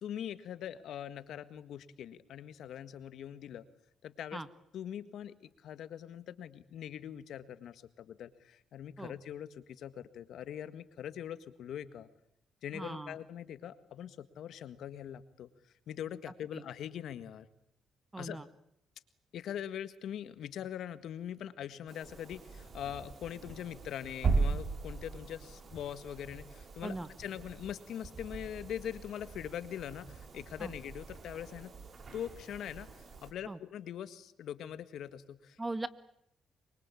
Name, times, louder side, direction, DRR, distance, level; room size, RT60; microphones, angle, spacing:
voice 1, 0.0-3.7 4.0-4.4 4.7-12.1 12.6-17.5 18.2-18.4 19.3-31.7 32.1-35.6, left 10 dB, 75° left, 13 dB, 1.7 m, -42 dB
voice 2, 12.7-13.2 16.5-16.6 18.1-18.4 26.8-27.1 30.6-30.7 33.5-33.6 35.6-35.9, right 2 dB, 15° right, 14 dB, 1.6 m, -39 dB
sound 1, 21.9-33.3, right 4 dB, 45° right, 4.9 m, -39 dB
24.5 x 24.0 x 8.5 m, 0.71 s
cardioid pair, 90°, 0 cm